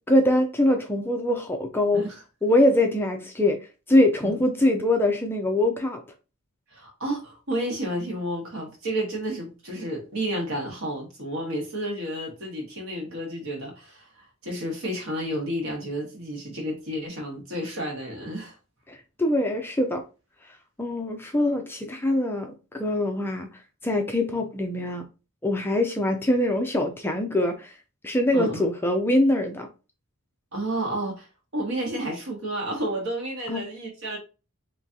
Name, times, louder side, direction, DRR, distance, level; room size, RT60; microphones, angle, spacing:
voice 1, 0.1-2.0 2.4-3.6 3.9-6.0 18.9-20.0 20.8-23.5 23.8-25.0 25.4-27.7 28.0-29.7 33.5-33.6, left 1 dB, 10° left, 0.4 m, -23 dB
voice 2, 6.7-18.6 28.3-28.7 30.5-31.3 31.5-34.2, right 1 dB, 65° right, 1.5 m, -31 dB
3.7 x 3.0 x 2.8 m
head